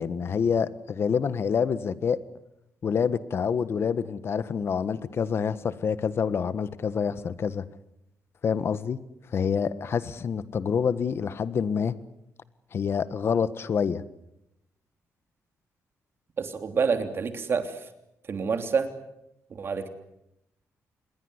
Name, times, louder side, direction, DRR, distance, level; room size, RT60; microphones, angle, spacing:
voice 1, 0.0-2.2 2.8-7.6 8.4-9.0 9.3-11.9 12.7-14.0, left 6 dB, 50° left, 1.4 m, -27 dB
voice 2, 16.4-17.7 18.3-18.9 19.5-19.9, right 5 dB, 45° right, 3.1 m, -27 dB
27.5 x 21.5 x 8.1 m
cardioid pair, 120°, 5 cm